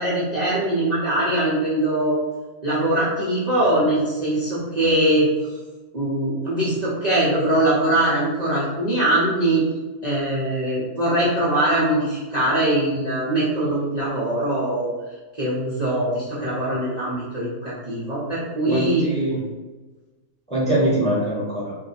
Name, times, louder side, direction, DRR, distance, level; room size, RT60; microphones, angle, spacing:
voice 1, 0.0-2.2 2.6-5.3 5.9-9.6 10.0-14.9 15.3-19.0, right 1 dB, 60° right, -9 dB, 0.4 m, -22 dB
voice 2, 18.6-19.4 20.5-21.8, right 1 dB, 5° left, -7 dB, 0.6 m, -23 dB
2.7 x 2.2 x 3.9 m, 1.2 s
omnidirectional pair, 1.7 m